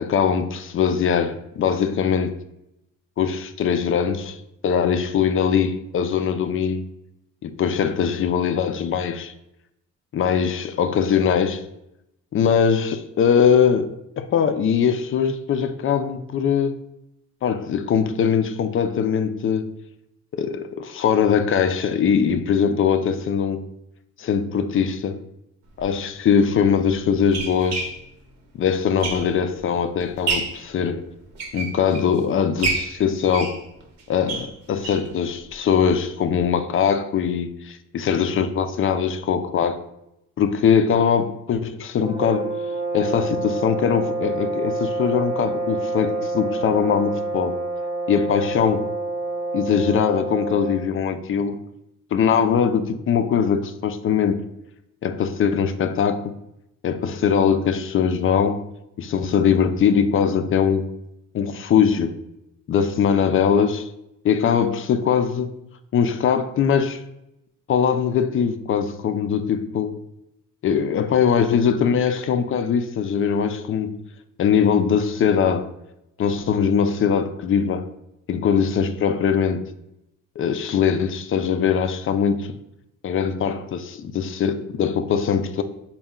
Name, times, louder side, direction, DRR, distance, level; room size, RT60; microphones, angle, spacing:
voice 1, 0.0-2.4 3.2-4.4 4.6-6.9 7.4-9.3 10.1-11.6 12.3-16.8 17.4-19.7 20.3-23.7 24.2-25.2 25.8-27.9 28.5-31.1 31.5-33.6 34.1-39.8 40.4-42.5 42.9-47.6 48.1-48.9 49.5-51.6 52.1-54.4 55.0-56.3 56.8-58.7 59.0-60.9 61.3-62.1 62.7-63.9 64.2-65.5 65.9-67.0 67.7-70.0 70.6-74.0 74.4-75.7 76.2-77.9 78.3-79.6 80.4-82.5 83.0-85.6, left 7 dB, 45° left, 0.4 m, -21 dB
sound 1, 25.7-25.8 26.6-29.6 30.0-30.7 31.2-32.2 32.6-35.1 35.5-35.6 35.9-36.0 36.3-36.4, right 4 dB, 60° right, 0.8 m, -29 dB
sound 2, 42.0-50.9, right 2 dB, 25° right, 0.5 m, -27 dB
4.3 x 2.2 x 3.6 m
cardioid pair, 90°, 30 cm